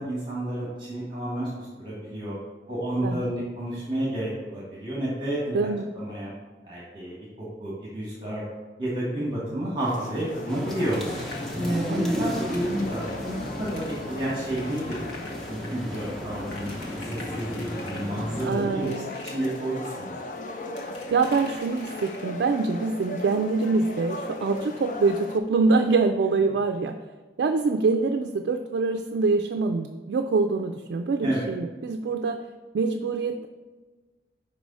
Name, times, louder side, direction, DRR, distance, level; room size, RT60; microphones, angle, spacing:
voice 1, 0.0-2.4 2.7-5.6 5.9-6.3 6.6-8.5 8.8-11.0 11.5-15.1 15.5-16.7 17.0-18.9 19.2-20.2 31.2-31.4, right 1 dB, 25° right, -7 dB, 1.6 m, -30 dB
voice 2, 3.0-3.4 5.5-5.9 11.9-12.0 18.5-19.1 21.1-26.9 27.4-32.4 32.7-33.5, right 4 dB, 75° right, 6 dB, 0.3 m, -25 dB
sound 1, 9.8-25.4, left 1 dB, 45° left, 0.5 m, -38 dB
sound 2, 10.5-18.5, equal, ahead, 0.6 m, -35 dB
sound 3, 10.7-22.6 24.1-24.2 24.5-24.6 25.0-25.1, left 2 dB, 75° left, 1.3 m, -47 dB
5.5 x 4.7 x 4.1 m, 1.3 s
head